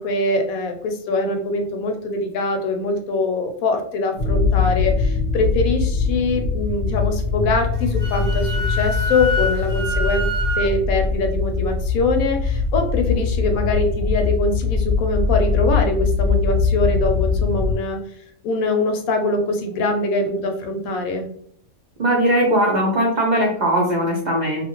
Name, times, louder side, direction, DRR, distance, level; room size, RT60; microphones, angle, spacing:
voice 1, 0.0-10.3 10.6-18.0 18.4-21.2, left 2 dB, 80° left, 4 dB, 1.0 m, -23 dB
sound 1, 4.2-17.7, left 4 dB, 55° left, 0.5 m, -22 dB
Wind instrument woodwind instrument, 7.7-10.7, equal, 30° right, 0.9 m, -26 dB
voice 2, 22.0-24.6, right 1 dB, 75° right, -1 dB, 0.4 m, -19 dB
2.6 x 2.5 x 2.9 m, 0.63 s
omnidirectional pair, 1.5 m